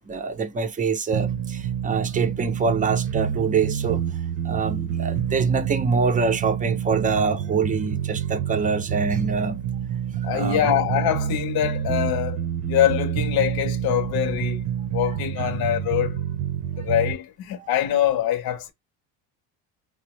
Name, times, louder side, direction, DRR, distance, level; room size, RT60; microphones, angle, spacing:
voice 1, 0.1-4.0 4.4-9.6 10.3-10.7 15.4-15.5 17.6-17.7, right 5 dB, 20° right, 0.5 m, -25 dB
sound 1, 1.1-17.1, right 9 dB, 65° right, 0.7 m, -28 dB
voice 2, 10.2-12.4 12.7-14.6 14.9-16.2 16.8-18.7, left 11 dB, 55° left, 0.8 m, -24 dB
4.2 x 2.1 x 2.9 m
cardioid pair, 120°, 44 cm